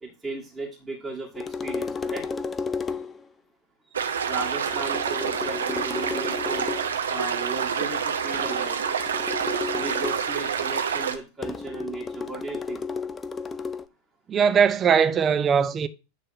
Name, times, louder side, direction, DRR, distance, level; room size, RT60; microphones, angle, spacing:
voice 1, 0.0-2.2 4.3-6.7 7.1-8.8 9.7-12.8, right 3 dB, 5° right, 2.2 m, -36 dB
sound 1, 1.3-3.3 4.7-7.0 8.3-10.3 11.4-13.8, left 5 dB, 20° left, 0.4 m, -33 dB
sound 2, 3.9-11.2, right 7 dB, 65° right, 0.9 m, -27 dB
voice 2, 14.3-15.9, right 7 dB, 25° right, 0.6 m, -20 dB
8.8 x 3.4 x 5.4 m
figure-of-eight pair, 90°, 0 cm